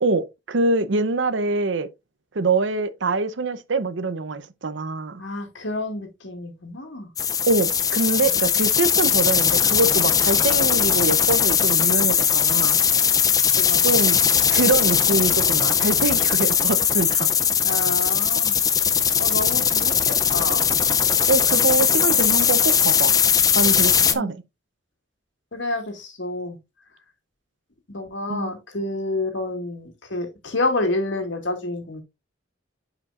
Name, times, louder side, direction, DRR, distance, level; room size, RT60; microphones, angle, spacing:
voice 1, 0.0-1.9 2.3-5.2 7.5-12.8 13.8-14.2 14.5-17.3 21.3-23.2 23.5-24.4 28.3-28.5, right 3 dB, 75° right, 0.7 m, -24 dB
voice 2, 5.2-7.1 8.2-8.3 13.4-14.0 17.6-18.6 19.2-20.7 24.1-24.3 25.5-26.6 27.9-32.0, left 2 dB, 75° left, 2.0 m, -29 dB
sound 1, 7.2-24.1, left 7 dB, 20° left, 0.4 m, -19 dB
9.8 x 5.0 x 2.4 m
head